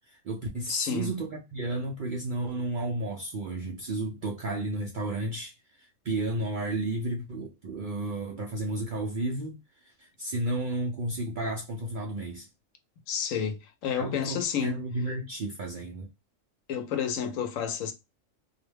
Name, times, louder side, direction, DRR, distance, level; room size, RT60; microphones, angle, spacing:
voice 1, 0.1-9.6 9.8-12.5 14.0-16.1, right 2 dB, 65° right, 0.5 m, -32 dB
voice 2, 0.7-1.1 13.1-14.8 16.7-17.9, left 8 dB, 85° left, 1.0 m, -30 dB
2.4 x 2.1 x 3.2 m
omnidirectional pair, 1.4 m